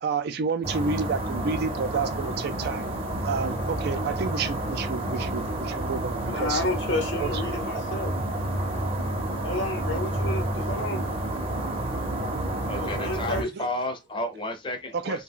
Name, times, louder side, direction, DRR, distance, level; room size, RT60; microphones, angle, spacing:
voice 1, 0.0-3.0 3.2-6.6 7.1-7.3 13.5-13.7 14.9-15.2, right 5 dB, 55° right, 0.4 m, -30 dB
sound 1, 0.6-13.4, right 1 dB, 30° right, 0.7 m, -29 dB
voice 2, 6.3-8.1 9.4-11.1 12.7-13.5, left 2 dB, 75° left, 0.9 m, -31 dB
voice 3, 12.7-15.2, left 1 dB, 25° left, 0.6 m, -32 dB
2.4 x 2.2 x 3.6 m
head